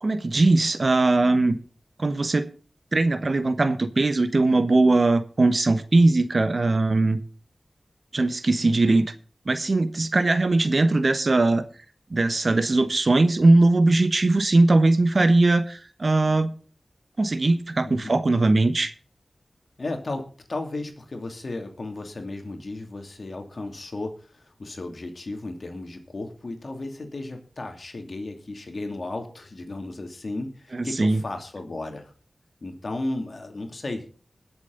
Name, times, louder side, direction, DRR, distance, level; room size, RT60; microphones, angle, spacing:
voice 1, 0.0-1.6 2.0-2.5 2.9-7.2 8.1-9.1 9.5-11.6 12.1-16.6 17.2-18.9 30.7-31.2, right 2 dB, 60° right, 1.2 m, -20 dB
voice 2, 17.9-18.2 19.8-32.1 32.6-34.1, left 2 dB, 65° left, 2.6 m, -34 dB
20.5 x 7.2 x 4.0 m
cardioid pair, 40°, 0 cm